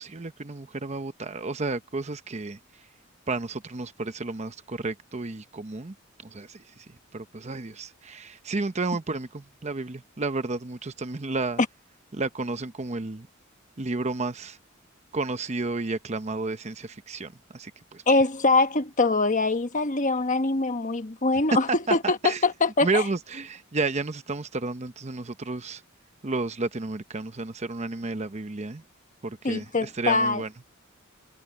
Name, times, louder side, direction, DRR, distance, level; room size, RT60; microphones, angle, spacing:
voice 1, 0.0-2.6 3.3-5.9 6.2-11.6 12.1-13.3 13.8-14.6 15.1-18.0 21.9-22.0 22.2-22.4 22.8-25.8 26.2-28.8 29.2-30.5, right 3 dB, 35° right, 0.8 m, -32 dB
voice 2, 18.1-23.0 29.4-30.4, left 3 dB, 40° left, 1.3 m, -23 dB
head